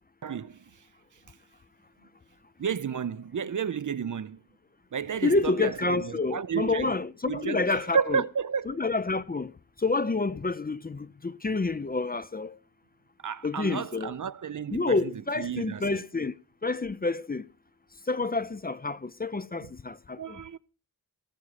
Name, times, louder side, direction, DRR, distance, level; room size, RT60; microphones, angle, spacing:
voice 1, 0.2-0.6 2.6-4.4 4.9-6.9 7.3-8.8 13.2-16.0 19.6-19.7 20.2-20.6, right 7 dB, 55° right, 0.6 m, -32 dB
voice 2, 5.2-8.2 8.7-9.5 9.8-12.5 13.4-14.1 14.7-16.3 16.6-17.5 18.1-20.4, left 3 dB, 25° left, 0.5 m, -28 dB
16.5 x 7.2 x 4.8 m
wide cardioid pair, 60°, 37 cm